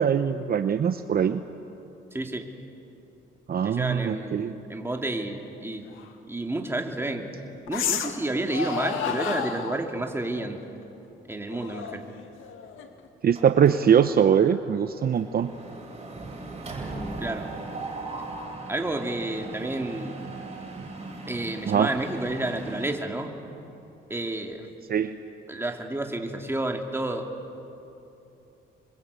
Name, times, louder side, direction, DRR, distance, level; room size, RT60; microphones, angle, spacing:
voice 1, 0.0-1.4 3.5-4.5 13.2-15.5 21.7-21.9 24.9-25.2, right 8 dB, 50° right, 10 dB, 0.8 m, -22 dB
voice 2, 2.1-2.5 3.6-5.9 6.3-7.3 7.7-10.6 11.3-12.0 17.2-17.5 18.7-20.1 21.3-23.3 24.1-24.7 25.5-27.3, right 2 dB, 10° right, 3 dB, 2.6 m, -30 dB
sound 1, 6.0-6.1 7.7-8.2 8.5-9.9 11.5-13.1, left 7 dB, 85° left, 1.8 m, -31 dB
Mechanisms, 13.4-14.0 14.3-14.5 14.8-22.9, right 3 dB, 30° right, 7.1 m, -38 dB
27.5 x 24.0 x 8.3 m, 3.0 s
cardioid pair, 90°, 20 cm